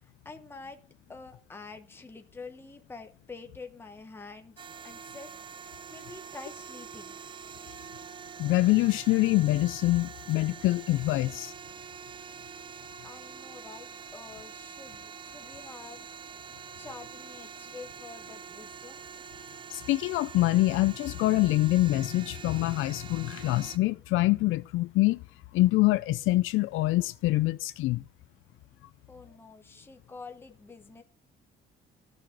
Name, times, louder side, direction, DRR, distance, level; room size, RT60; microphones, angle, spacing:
voice 1, 0.0-0.8 1.1-5.3 5.9-7.3 13.0-16.1 16.8-19.0 29.1-31.0, left 4 dB, 10° left, 1.0 m, -47 dB
sound 1, 4.6-23.8, right 7 dB, 25° right, 0.5 m, -45 dB
voice 2, 8.4-11.5 19.7-25.2 25.5-28.0, left 18 dB, 85° left, 0.4 m, -25 dB
13.0 x 6.3 x 6.0 m
cardioid pair, 145°, 20 cm